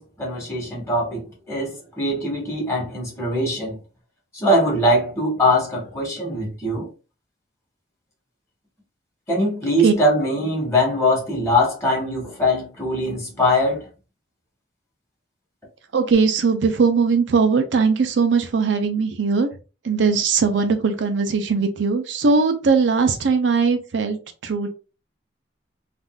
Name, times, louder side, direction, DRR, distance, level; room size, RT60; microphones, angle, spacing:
voice 1, 0.0-3.8 4.3-6.9 9.3-13.9, left 1 dB, 15° left, 1.5 m, -22 dB
voice 2, 15.9-19.5 19.8-24.2 24.4-24.7, right 5 dB, 80° right, 0.5 m, -19 dB
3.5 x 2.5 x 2.3 m
head